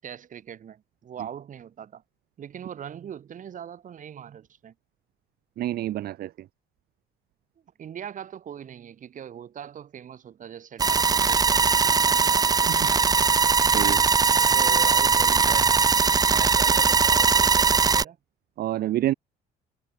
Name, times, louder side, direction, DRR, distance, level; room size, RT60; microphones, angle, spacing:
voice 1, 0.0-2.0 2.4-4.7 7.8-13.1 14.5-15.9 16.3-18.2, right 9 dB, 50° right, 5.5 m, -41 dB
voice 2, 5.6-6.3 12.8-12.9 13.6-14.0 18.6-19.1, right 13 dB, 65° right, 1.4 m, -27 dB
sound 1, 10.8-18.0, right 5 dB, 20° right, 0.6 m, -20 dB
cardioid pair, 110°, 17 cm